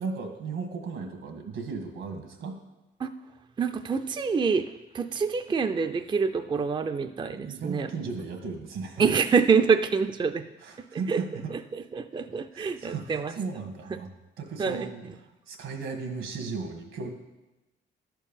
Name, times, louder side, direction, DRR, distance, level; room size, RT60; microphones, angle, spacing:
voice 1, 0.0-2.6 7.3-9.1 10.6-11.5 12.5-14.1 14.4-17.1, right 4 dB, 80° right, 4 dB, 1.7 m, -36 dB
voice 2, 3.6-7.9 9.0-10.4 10.9-11.2 11.7-13.3 13.9-14.0 14.6-14.9, right 5 dB, 25° right, 9 dB, 0.4 m, -26 dB
11.0 x 4.6 x 7.1 m, 1.1 s
cardioid pair, 90°, 20 cm